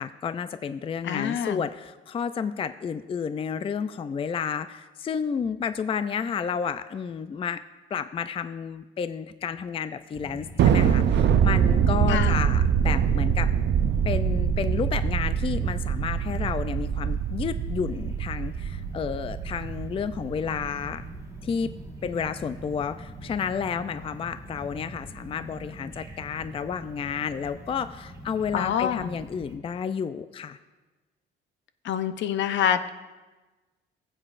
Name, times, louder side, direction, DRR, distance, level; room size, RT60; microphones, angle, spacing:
voice 1, 0.0-7.6 7.9-13.5 14.1-21.1 21.4-21.7 22.0-30.6, left 7 dB, 30° left, 12 dB, 0.3 m, -31 dB
voice 2, 1.0-1.6 12.1-12.5 28.5-29.1 31.8-32.9, left 9 dB, 70° left, 11 dB, 0.6 m, -26 dB
sound 1, 10.1-29.6, right 1 dB, 15° right, 1.4 m, -43 dB
Thunder, 10.6-21.2, right 8 dB, 60° right, 0.6 m, -24 dB
19.0 x 7.6 x 2.5 m, 1.2 s
cardioid pair, 90°, 20 cm